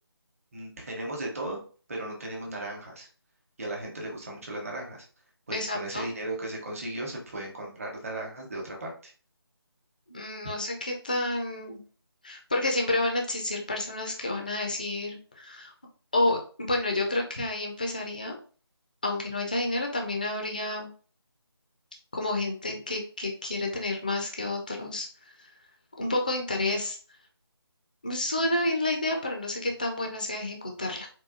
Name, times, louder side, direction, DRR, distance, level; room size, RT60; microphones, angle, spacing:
voice 1, 0.5-1.6 1.9-3.1 3.6-5.1 5.5-8.9, right 1 dB, 35° right, -1 dB, 0.9 m, -36 dB
voice 2, 5.5-6.1 10.1-11.8 12.2-15.7 16.1-18.4 19.0-20.9 22.1-25.1 25.4-25.5 26.0-27.0 28.0-31.1, left 2 dB, 20° left, 1 dB, 0.3 m, -30 dB
4.1 x 2.3 x 2.5 m, 0.40 s
figure-of-eight pair, 160°, 13 cm